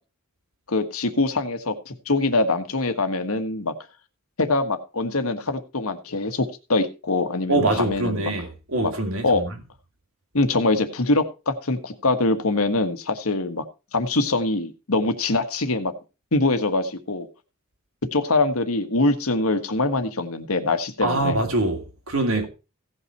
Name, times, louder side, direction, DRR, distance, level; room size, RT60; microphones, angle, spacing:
voice 1, 0.7-3.7 4.4-8.3 8.8-8.9 9.2-9.4 10.3-13.6 13.9-15.9 16.3-17.3 18.1-21.4, left 2 dB, 80° left, 1.5 m, -23 dB
voice 2, 7.5-9.6 21.0-22.5, right 2 dB, 70° right, 2.4 m, -24 dB
16.5 x 5.7 x 4.5 m
head